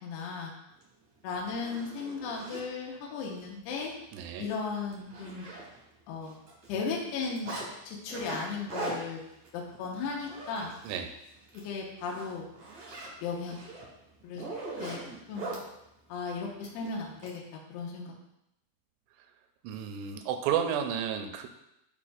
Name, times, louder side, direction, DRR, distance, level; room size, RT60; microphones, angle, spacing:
voice 1, 0.0-0.5 1.2-3.9 4.4-5.5 6.1-6.4 6.7-7.6 7.9-9.2 9.5-10.7 11.5-12.5 13.2-13.6 14.2-14.4 14.8-15.0 15.3-15.5 16.1-17.4 17.7-18.1, left 4 dB, 75° left, -2 dB, 3.0 m, -36 dB
Zipper (clothing), 0.8-0.9 1.3-2.6 3.2-3.4 3.7-3.9 4.2-4.3 4.7-6.0 6.2-7.7 8.1-11.0 11.4-11.6 12.0-15.6 16.6-17.3, right 2 dB, 50° right, 1.8 m, -41 dB
voice 2, 4.1-4.5 10.8-11.1 19.6-21.5, right 8 dB, 80° right, 6 dB, 2.8 m, -32 dB
11.5 x 4.4 x 2.5 m, 0.84 s
omnidirectional pair, 5.1 m